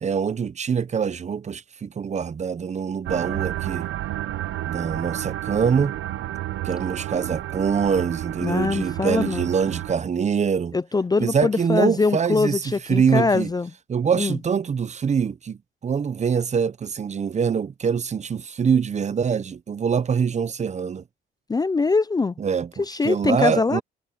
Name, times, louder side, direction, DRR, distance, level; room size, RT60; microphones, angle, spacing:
voice 1, 0.0-3.9 4.7-6.0 6.6-10.7 11.2-13.5 13.9-21.0 22.4-23.8, right 6 dB, 35° right, 0.7 m, -24 dB
sound 1, 3.1-9.9, right 14 dB, 85° right, 1.1 m, -31 dB
voice 2, 8.4-9.5 10.7-13.7 14.1-14.4 21.5-22.3 22.8-23.8, left 4 dB, 20° left, 0.5 m, -22 dB
cardioid pair, 90°, 20 cm